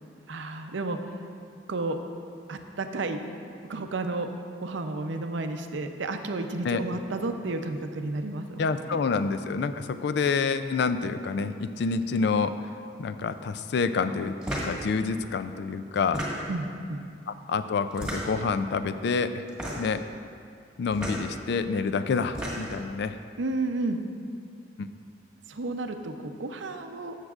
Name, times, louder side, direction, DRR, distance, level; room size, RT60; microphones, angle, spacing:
voice 1, 0.3-1.0 1.7-2.0 2.5-3.2 3.7-4.3 4.6-8.6 8.9-9.0 16.5-17.0 23.4-24.0 25.5-27.2, right 2 dB, 80° right, 6 dB, 0.6 m, -32 dB
voice 2, 8.6-12.5 13.0-14.3 14.6-16.2 17.3-19.4 19.8-20.0 20.8-23.2 24.8-24.9, left 5 dB, 60° left, 11 dB, 0.3 m, -28 dB
sound 1, 14.4-14.8 16.0-16.7 17.9-18.5 19.5-20.0 20.9-21.2 22.1-22.8, equal, 5° right, 1.6 m, -33 dB
14.0 x 6.5 x 2.4 m, 2.4 s
head